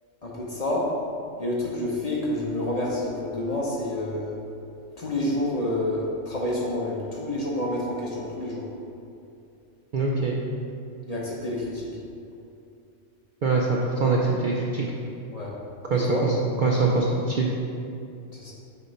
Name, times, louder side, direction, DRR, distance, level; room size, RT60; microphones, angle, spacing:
voice 1, 0.2-0.9 1.4-4.4 5.0-8.7 11.1-11.9 15.3-15.5 15.9-16.3 18.3-18.5, left 1 dB, 35° left, -4 dB, 0.8 m, -28 dB
voice 2, 9.9-10.3 13.4-14.8 15.9-16.3 16.6-17.5, right 3 dB, 60° right, -2 dB, 0.5 m, -23 dB
6.4 x 3.6 x 5.3 m, 2.6 s
omnidirectional pair, 1.3 m